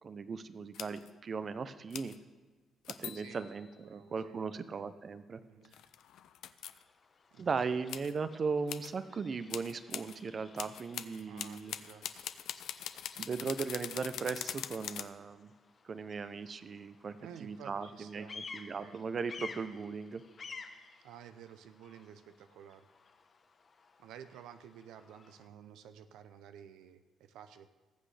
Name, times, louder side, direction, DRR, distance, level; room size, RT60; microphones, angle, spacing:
voice 1, 0.0-2.1 2.9-5.4 7.4-11.7 13.2-15.5 15.8-20.2, right 5 dB, 45° right, 12 dB, 0.6 m, -38 dB
sound 1, 0.7-1.1 1.9-2.2 2.9-3.7 5.7-6.8 7.9-8.1 8.7-8.9 9.5-10.2 10.6-15.1, left 10 dB, 80° left, 0.5 m, -42 dB
voice 2, 3.1-4.9 5.4-5.8 7.3-7.6 11.3-12.3 17.2-18.4 18.8-19.0 21.0-22.9 24.0-27.7, right 9 dB, 90° right, 10 dB, 0.5 m, -53 dB
Bird vocalization bird call bird song, 6.7-25.5, left 4 dB, 45° left, 1.0 m, -54 dB
19.5 x 7.7 x 3.3 m, 1.3 s
cardioid pair, 90°, 0 cm